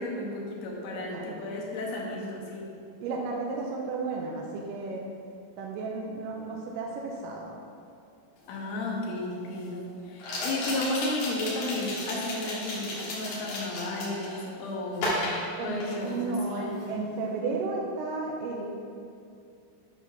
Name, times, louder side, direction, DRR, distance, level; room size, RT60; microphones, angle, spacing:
voice 1, 0.0-2.7 8.5-15.2 15.6-16.8, left 2 dB, 60° left, -2 dB, 2.0 m, -33 dB
voice 2, 0.9-1.4 3.0-5.1 5.6-7.5 15.6-18.7, right 3 dB, 80° right, -1 dB, 2.2 m, -33 dB
sound 1, 8.5-8.6 10.2-14.4 14.9-16.3 16.6-16.9, left 1 dB, 90° left, 3.7 m, -33 dB
10.0 x 4.1 x 5.8 m, 2.5 s
omnidirectional pair, 4.2 m